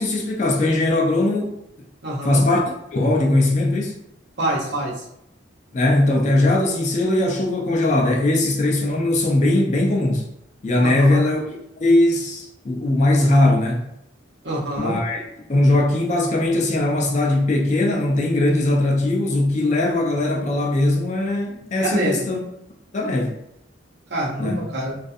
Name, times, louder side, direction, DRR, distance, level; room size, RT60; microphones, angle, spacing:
voice 1, 0.0-1.6 2.2-2.6 2.9-4.0 5.7-10.3 10.6-13.8 14.8-15.2 15.5-22.4 22.9-23.3 24.4-24.6, left 2 dB, 35° left, 0 dB, 0.4 m, -20 dB
voice 2, 2.0-2.4 4.4-4.9 10.8-11.2 14.4-14.9 21.8-22.2 24.1-25.0, right 1 dB, 60° right, -4 dB, 0.7 m, -25 dB
2.4 x 2.4 x 2.5 m, 0.79 s
head